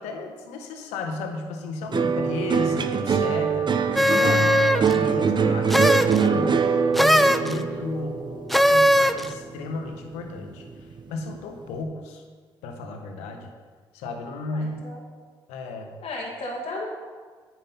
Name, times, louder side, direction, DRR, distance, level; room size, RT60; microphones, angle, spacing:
voice 1, 0.0-3.8 4.1-12.2 12.6-13.5 13.9-14.9 15.5-15.9, left 3 dB, 80° left, 4 dB, 1.2 m, -34 dB
sound 1, 1.9-10.4 10.7-11.3, right 6 dB, 45° right, 0.8 m, -24 dB
sound 2, 4.0-5.0 5.7-6.2 7.0-7.5 8.5-9.3, equal, ahead, 0.6 m, -19 dB
voice 2, 4.5-4.9 7.4-7.8 14.5-15.0 16.0-16.9, left 2 dB, 60° left, -2 dB, 2.1 m, -35 dB
9.1 x 6.1 x 5.7 m, 1.5 s
hypercardioid pair, 50°, 11 cm